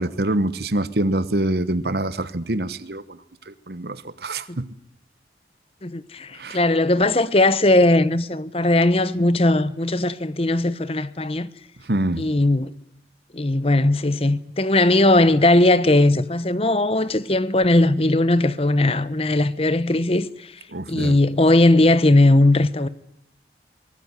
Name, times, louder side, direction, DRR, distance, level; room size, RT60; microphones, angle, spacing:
voice 1, 0.0-3.2 3.5-4.7 6.3-6.6 11.8-12.3 20.7-21.1, right 1 dB, 65° right, 1.2 m, -25 dB
voice 2, 5.8-11.5 12.2-12.7 13.3-20.3 20.9-22.9, left 2 dB, 35° left, 1.0 m, -18 dB
23.5 x 19.0 x 9.9 m
head